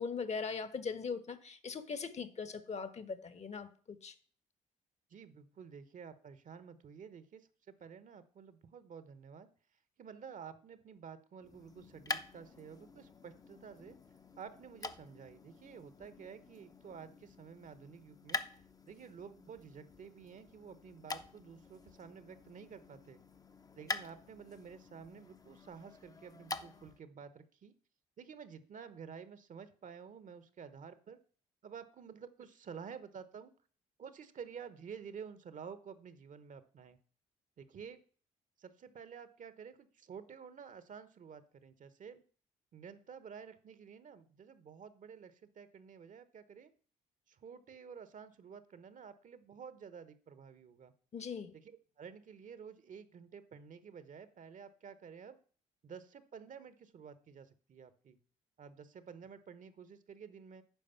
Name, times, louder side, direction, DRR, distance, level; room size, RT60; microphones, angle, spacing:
voice 1, 0.0-4.1 51.1-51.6, left 5 dB, 40° left, 1.1 m, -40 dB
voice 2, 5.1-9.5 10.0-14.0 14.4-18.4 18.9-23.2 23.8-27.7 28.2-31.2 31.6-33.5 34.0-37.0 37.6-38.0 38.6-42.2 42.7-46.7 47.3-50.9 51.6-55.4 55.8-58.2 58.6-60.6, right 6 dB, 50° right, 1.0 m, -51 dB
Light switch, 11.4-27.0, left 3 dB, 20° left, 0.7 m, -47 dB
9.2 x 5.2 x 5.7 m
hypercardioid pair, 55°, 17 cm